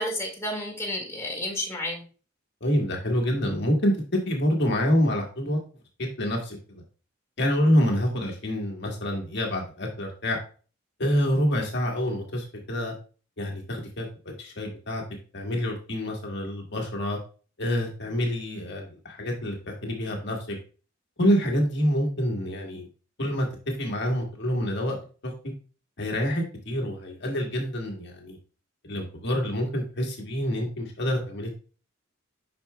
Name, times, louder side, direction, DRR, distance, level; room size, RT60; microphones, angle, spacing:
voice 1, 0.0-2.0, left 1 dB, 15° left, -1 dB, 1.9 m, -31 dB
voice 2, 2.6-5.6 6.0-6.8 7.4-10.4 11.0-12.9 13.4-15.0 15.3-17.2 17.6-20.6 21.2-22.9 23.2-25.0 25.2-25.3 26.0-28.4 28.8-31.6, equal, 60° left, 1 dB, 1.4 m, -27 dB
8.4 x 5.6 x 2.2 m, 0.37 s
head